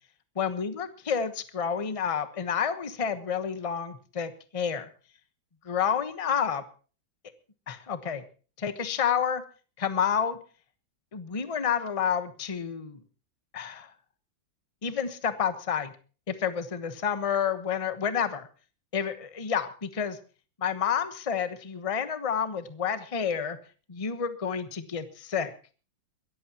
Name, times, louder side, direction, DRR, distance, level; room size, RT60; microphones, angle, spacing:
voice 1, 0.4-4.9 5.7-6.6 7.7-8.2 8.6-9.4 9.8-10.4 11.1-13.0 13.5-13.9 14.8-15.9 16.3-18.5 18.9-20.2 20.6-23.6 23.9-25.5, left 7 dB, 25° left, 10 dB, 0.9 m, -29 dB
22.5 x 14.5 x 2.9 m, 0.36 s
omnidirectional pair, 2.1 m